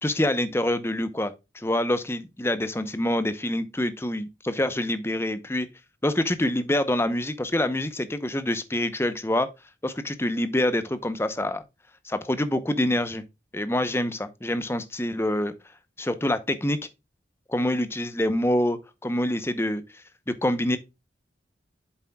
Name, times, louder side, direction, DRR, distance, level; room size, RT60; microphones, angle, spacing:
voice 1, 0.0-5.7 6.0-9.5 9.8-11.6 12.0-13.2 13.5-15.5 16.0-16.8 17.5-19.8 20.3-20.8, left 1 dB, 15° left, 0.7 m, -26 dB
8.6 x 7.4 x 2.3 m
head